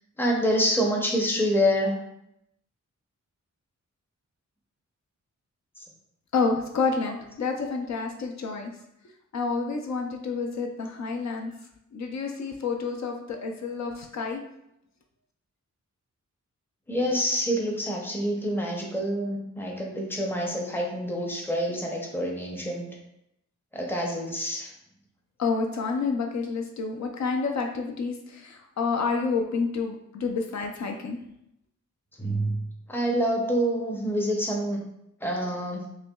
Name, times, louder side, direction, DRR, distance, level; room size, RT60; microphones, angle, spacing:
voice 1, 0.2-2.0 16.9-22.9 23.7-24.7 32.2-32.6 32.9-34.8 35.2-35.8, equal, 5° left, -1 dB, 0.6 m, -27 dB
voice 2, 6.3-8.7 9.3-11.5 11.9-14.4 25.4-31.2, left 4 dB, 65° left, 2 dB, 0.5 m, -29 dB
5.6 x 2.2 x 2.3 m, 0.79 s
wide cardioid pair, 130°, 31 cm